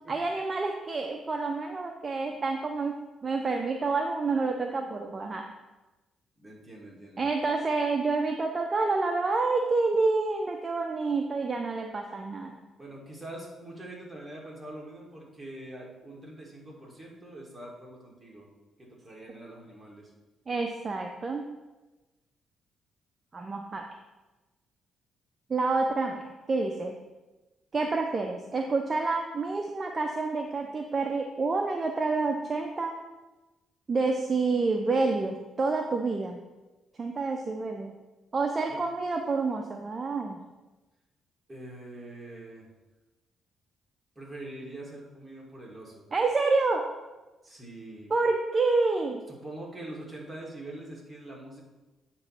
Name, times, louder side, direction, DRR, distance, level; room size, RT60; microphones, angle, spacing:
voice 1, 0.1-3.0 3.2-5.4 7.2-12.6 20.5-21.5 23.3-23.9 25.5-26.9 27.7-32.9 33.9-36.4 37.0-37.9 38.3-40.4 46.1-46.8 48.1-49.2, right 3 dB, 35° right, 3 dB, 0.5 m, -28 dB
voice 2, 6.4-7.3 12.8-18.5 18.8-20.1 38.7-38.8 41.5-42.7 44.2-46.1 47.4-48.1 49.3-51.6, right 1 dB, 15° right, -3 dB, 2.0 m, -44 dB
8.4 x 3.0 x 5.7 m, 1.1 s
cardioid pair, 90°, 0 cm